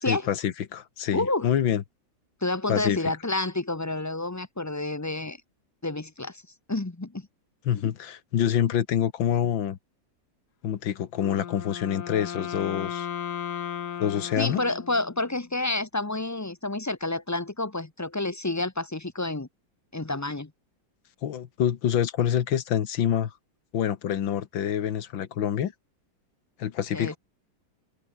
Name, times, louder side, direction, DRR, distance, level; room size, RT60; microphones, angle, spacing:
voice 1, 0.1-1.8 2.7-3.0 7.7-9.8 10.6-13.1 14.0-14.6 21.2-23.3 23.7-25.7 26.6-27.2, left 9 dB, 80° left, 2.0 m, -26 dB
voice 2, 1.1-1.5 2.4-5.4 5.8-6.4 6.7-7.3 14.4-19.5 19.9-20.5 26.9-27.1, left 2 dB, 20° left, 0.4 m, -29 dB
Wind instrument woodwind instrument, 11.1-15.4, left 9 dB, 60° left, 1.7 m, -35 dB
open air
omnidirectional pair, 2.1 m